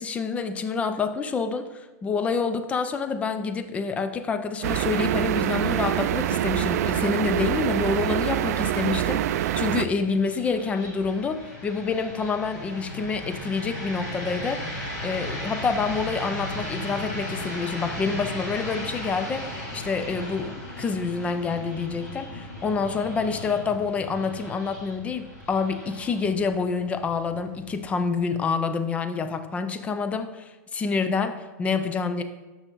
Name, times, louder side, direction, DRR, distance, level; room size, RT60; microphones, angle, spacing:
voice 1, 0.0-14.7 15.0-32.2, left 5 dB, 15° left, 10 dB, 0.4 m, -27 dB
sound 1, 4.6-9.9, right 12 dB, 60° right, 0.3 m, -25 dB
sound 2, 9.2-28.2, left 1 dB, 35° left, 2.4 m, -37 dB
6.5 x 6.0 x 3.8 m, 1.2 s
hypercardioid pair, 145°, 10 cm